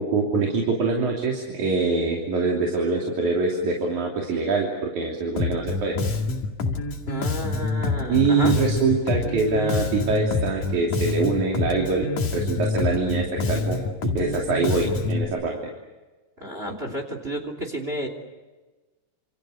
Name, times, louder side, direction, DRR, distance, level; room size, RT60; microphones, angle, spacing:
voice 1, 0.0-6.0 8.1-15.6, right 3 dB, 80° right, -1 dB, 4.5 m, -24 dB
Bass guitar, 5.4-15.3, left 3 dB, 85° left, 3.8 m, -27 dB
voice 2, 7.1-8.5 16.4-18.1, right 1 dB, 20° right, 4 dB, 3.2 m, -31 dB
28.5 x 28.0 x 6.6 m, 1.2 s
omnidirectional pair, 3.4 m